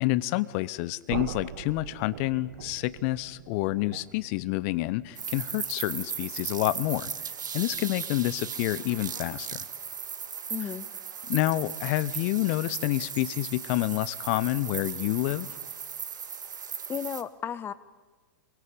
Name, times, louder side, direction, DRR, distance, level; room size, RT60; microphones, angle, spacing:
voice 1, 0.0-7.1 7.5-9.6 11.3-15.5, left 18 dB, 45° left, 18 dB, 1.1 m, -28 dB
sound 1, 1.1-7.0, right 13 dB, 55° right, 0.8 m, -43 dB
sound 2, 5.1-17.2, right 7 dB, 75° right, 1.9 m, -37 dB
voice 2, 10.5-10.9 16.9-17.7, left 8 dB, 20° left, 14 dB, 1.5 m, -34 dB
28.0 x 23.0 x 8.6 m, 1.3 s
hypercardioid pair, 105°, 10 cm